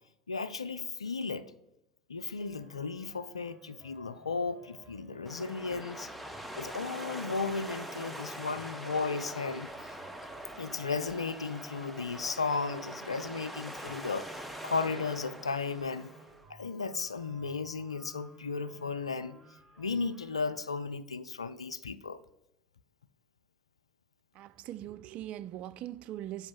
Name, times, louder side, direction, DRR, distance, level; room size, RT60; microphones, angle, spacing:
voice 1, 0.3-1.5 2.1-6.1 6.6-10.0 10.6-14.3 14.6-16.1 16.5-19.4 19.8-22.2, left 4 dB, 85° left, 0.3 m, -35 dB
sound 1, 2.4-20.7, right 2 dB, 15° right, 2.6 m, -58 dB
sound 2, 5.3-16.4, right 1 dB, ahead, 0.9 m, -43 dB
voice 2, 24.3-26.5, right 13 dB, 50° right, 0.3 m, -41 dB
6.2 x 5.1 x 6.0 m
figure-of-eight pair, 70°, 3 cm